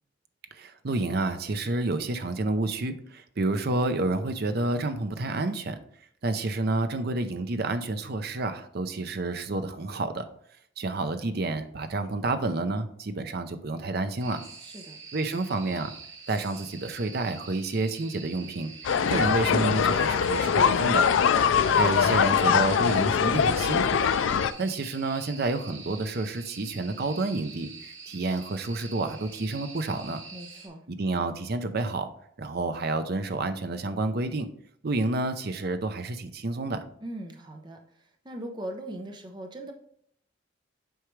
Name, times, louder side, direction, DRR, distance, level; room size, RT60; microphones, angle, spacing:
voice 1, 0.5-5.8 6.2-10.3 10.8-14.4 15.1-15.9 16.3-18.7 19.1-21.1 21.7-24.1 24.6-30.2 30.9-32.1 32.4-34.5 34.8-36.8, right 2 dB, 55° right, 9 dB, 0.6 m, -29 dB
sound 1, 14.2-30.7, right 5 dB, 80° right, 1.5 m, -45 dB
voice 2, 14.6-15.0 30.3-30.8 37.0-37.8 38.2-39.7, right 1 dB, 25° right, 3 dB, 0.8 m, -39 dB
sound 2, 18.8-24.5, left 7 dB, 75° left, 0.4 m, -22 dB
8.0 x 4.8 x 3.2 m, 0.66 s
head